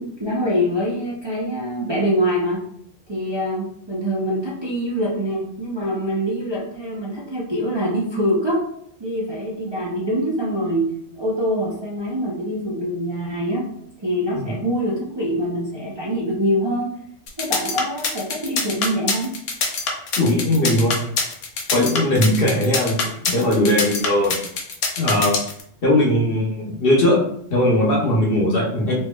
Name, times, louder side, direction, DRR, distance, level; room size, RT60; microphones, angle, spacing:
voice 1, 0.0-2.6 3.1-8.6 9.0-13.6 14.0-16.9 17.4-19.3, equal, 30° right, -6 dB, 0.5 m, -24 dB
sound 1, 17.3-25.6, left 4 dB, 85° left, 1.0 m, -24 dB
voice 2, 20.2-21.0 21.7-24.4 25.0-25.4 25.8-27.2 27.5-29.0, left 1 dB, 55° left, -2 dB, 1.0 m, -19 dB
4.2 x 2.9 x 2.2 m, 0.67 s
omnidirectional pair, 1.2 m